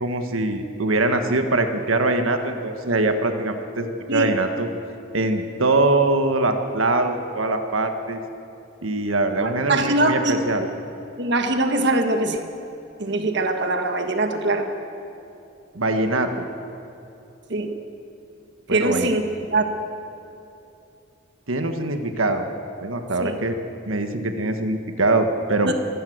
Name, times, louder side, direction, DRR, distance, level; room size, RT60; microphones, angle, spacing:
voice 1, 0.0-4.7 5.1-8.2 8.8-10.7 15.7-16.5 18.7-19.1 21.5-22.4 22.8-23.6 23.9-25.7, right 2 dB, 90° right, 6 dB, 1.5 m, -23 dB
voice 2, 9.4-10.4 11.2-12.4 13.0-14.7 17.5-17.7 18.7-19.7 23.2-23.4 25.6-25.7, right 2 dB, 55° right, 5 dB, 1.5 m, -22 dB
25.0 x 14.5 x 7.9 m, 2.9 s
head